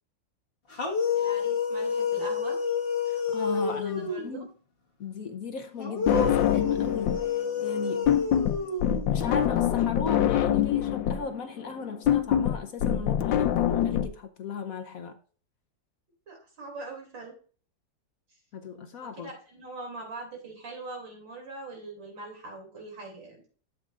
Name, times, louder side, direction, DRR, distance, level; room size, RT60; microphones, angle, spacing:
sound 1, 0.7-4.5 5.8-9.4, left 5 dB, 30° left, 1.8 m, -29 dB
voice 1, 1.1-2.6 3.4-4.5 16.3-17.4 19.0-23.4, right 2 dB, 90° right, 3.6 m, -42 dB
voice 2, 3.1-4.5 5.0-8.1 9.1-15.2 18.5-19.3, left 5 dB, 60° left, 1.0 m, -37 dB
sound 2, 6.1-7.3 7.6-14.1, left 10 dB, 90° left, 1.4 m, -25 dB
11.5 x 7.5 x 2.5 m
omnidirectional pair, 2.0 m